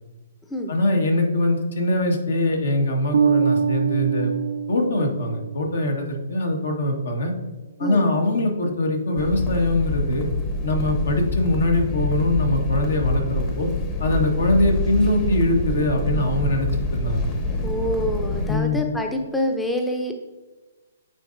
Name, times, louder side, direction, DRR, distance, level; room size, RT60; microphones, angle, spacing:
voice 1, 0.7-4.3 4.7-7.3 7.8-10.3 10.6-13.7 14.0-17.3 18.5-18.8, left 1 dB, 75° left, 3 dB, 1.4 m, -22 dB
Bass guitar, 3.1-5.8, right 6 dB, 85° right, 0.5 m, -23 dB
sound 1, 9.2-18.6, left 2 dB, 30° left, 1.0 m, -26 dB
voice 2, 17.6-20.1, left 1 dB, 5° left, 3 dB, 0.5 m, -26 dB
9.0 x 4.1 x 2.6 m, 1.2 s
hypercardioid pair, 135°, 0 cm